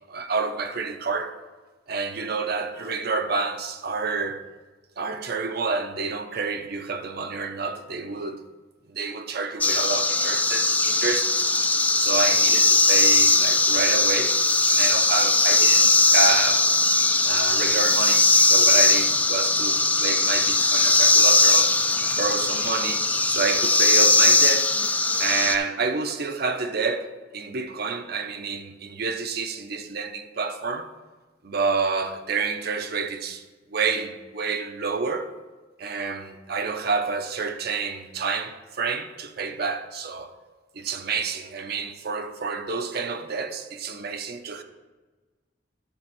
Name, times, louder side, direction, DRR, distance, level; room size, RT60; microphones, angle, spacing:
voice 1, 0.1-1.3 1.9-4.4 5.0-8.4 8.9-11.5 11.9-14.4 14.7-16.7 17.2-21.7 22.0-24.7 25.2-30.9 31.4-33.4 33.7-35.3 35.8-40.3 40.7-44.6, right 4 dB, 55° right, 0.7 m, -29 dB
sound 1, 9.6-25.6, left 3 dB, 10° left, 0.3 m, -19 dB
10.5 x 4.3 x 6.0 m
head